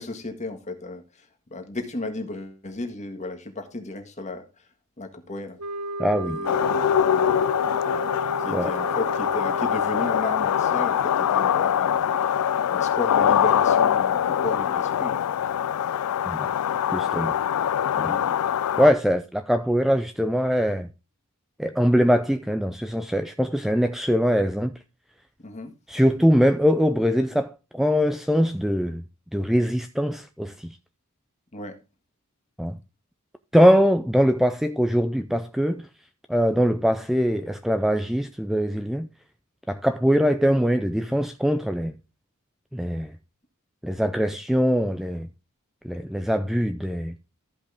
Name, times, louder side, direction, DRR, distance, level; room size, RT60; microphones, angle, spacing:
voice 1, 0.0-4.6 5.0-5.6 6.2-6.8 7.1-7.3 8.4-12.3 12.7-15.4 18.0-18.6 25.4-25.7 31.5-31.8, left 2 dB, 30° left, 1.7 m, -34 dB
sound 1, 5.6-10.5, right 1 dB, 70° right, 1.2 m, -33 dB
voice 2, 6.0-6.4 8.5-8.7 16.2-16.5 16.9-17.4 18.0-18.1 18.8-20.9 21.6-24.7 25.9-29.0 29.3-30.7 32.6-32.8 33.5-35.8 36.3-39.1 39.7-41.9 42.7-43.1 43.8-45.3 45.8-47.2, equal, ahead, 0.4 m, -22 dB
sound 2, 6.4-18.9, left 9 dB, 75° left, 0.3 m, -23 dB
14.5 x 5.2 x 3.5 m
head